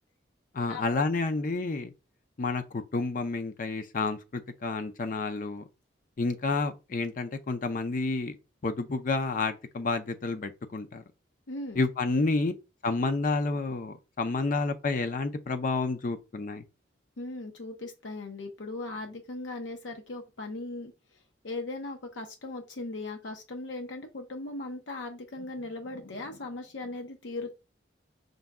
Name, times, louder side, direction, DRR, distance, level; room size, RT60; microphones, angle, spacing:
voice 1, 0.5-1.9 2.4-5.6 6.2-8.4 8.6-11.0 11.8-12.5 12.8-16.6, left 3 dB, 45° left, 0.5 m, -30 dB
voice 2, 11.5-11.8 17.2-20.9 21.4-27.6, left 2 dB, 80° left, 0.7 m, -38 dB
5.2 x 2.2 x 3.5 m
head